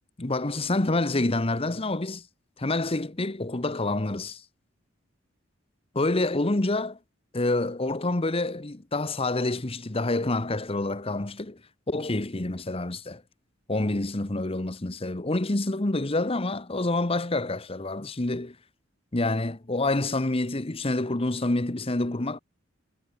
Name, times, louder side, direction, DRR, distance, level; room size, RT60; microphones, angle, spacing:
voice 1, 0.2-2.2 2.6-4.4 5.9-7.0 7.3-11.6 11.9-13.2 13.7-18.6 19.1-22.4, left 2 dB, 30° left, 1.1 m, -27 dB
head